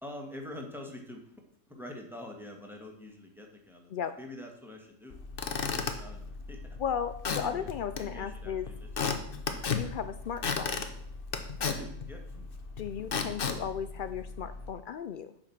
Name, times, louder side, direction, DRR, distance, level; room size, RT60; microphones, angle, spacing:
voice 1, 0.0-1.3 1.7-5.1 5.6-6.8 7.4-7.7 8.0-9.1 11.6-12.4, left 1 dB, ahead, 2 dB, 1.6 m, -45 dB
Squeak / Wood, 5.1-14.7, left 5 dB, 45° left, 1.0 m, -35 dB
voice 2, 6.8-8.7 9.7-10.8 12.8-15.3, left 8 dB, 85° left, 11 dB, 0.4 m, -35 dB
8.9 x 5.9 x 6.0 m, 0.68 s
omnidirectional pair, 1.4 m